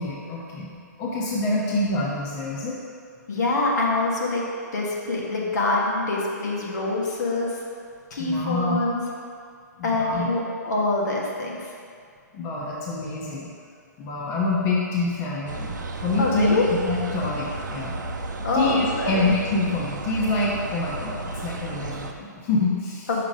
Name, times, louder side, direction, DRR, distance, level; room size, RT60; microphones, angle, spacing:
voice 1, 0.0-2.8 8.2-8.8 9.8-10.3 12.3-13.5 14.0-15.7 16.0-16.6 16.8-17.9 18.5-23.1, left 2 dB, 30° left, -4 dB, 1.0 m, -26 dB
voice 2, 3.3-4.4 4.7-7.5 8.1-9.0 9.8-11.6 16.2-16.6 18.4-19.3 23.1-23.2, left 2 dB, 70° left, -3 dB, 1.6 m, -25 dB
sound 1, 15.5-22.1, right 3 dB, 80° right, 0.6 m, -33 dB
5.8 x 5.1 x 5.0 m, 2.3 s
hypercardioid pair, 130°, 10 cm